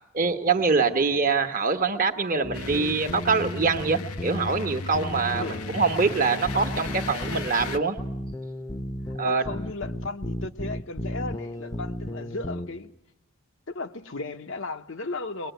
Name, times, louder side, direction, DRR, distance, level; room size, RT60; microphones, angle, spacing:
voice 1, 0.1-5.4 5.7-8.0 9.2-9.5, right 4 dB, 40° right, 1.2 m, -24 dB
sound 1, 2.4-12.7, left 1 dB, 15° left, 0.8 m, -35 dB
sound 2, 2.5-7.8, left 4 dB, 80° left, 0.9 m, -36 dB
voice 2, 5.3-5.6 9.3-12.9 13.7-15.5, left 3 dB, 55° left, 0.9 m, -35 dB
21.5 x 21.5 x 9.2 m
head